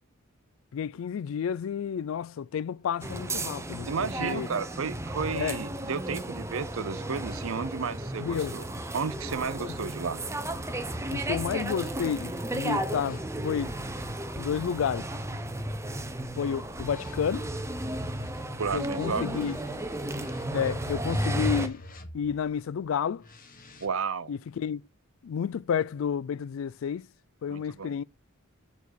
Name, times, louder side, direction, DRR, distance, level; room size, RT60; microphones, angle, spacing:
voice 1, 0.7-4.5 5.3-5.6 8.2-8.5 9.6-9.8 11.1-13.7 14.4-15.1 16.4-17.5 18.7-19.6 20.5-21.8 22.1-23.3 24.3-24.8 25.2-27.1 27.4-28.0, left 7 dB, 65° left, 0.3 m, -31 dB
sound 1, 3.0-21.7, right 1 dB, 15° right, 0.7 m, -34 dB
voice 2, 3.8-8.7 8.9-10.2 18.6-19.4 23.8-24.3 27.5-28.0, right 5 dB, 70° right, 0.6 m, -33 dB
sound 2, 9.1-14.2 15.1-22.5 23.2-23.9, equal, 40° left, 1.6 m, -47 dB
7.1 x 4.2 x 6.3 m
head